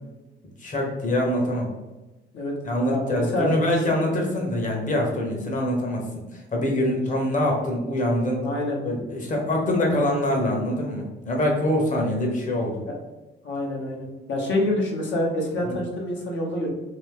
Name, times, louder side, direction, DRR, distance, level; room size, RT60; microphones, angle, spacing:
voice 1, 0.6-1.7 2.6-8.4 8.8-12.8 15.7-15.8, left 1 dB, 40° left, -1 dB, 1.1 m, -24 dB
voice 2, 2.9-3.5 8.4-8.8 12.9-13.0 13.4-16.7, left 1 dB, 65° left, -1 dB, 1.1 m, -27 dB
3.1 x 2.7 x 3.6 m, 1.1 s
cardioid pair, 90°, 20 cm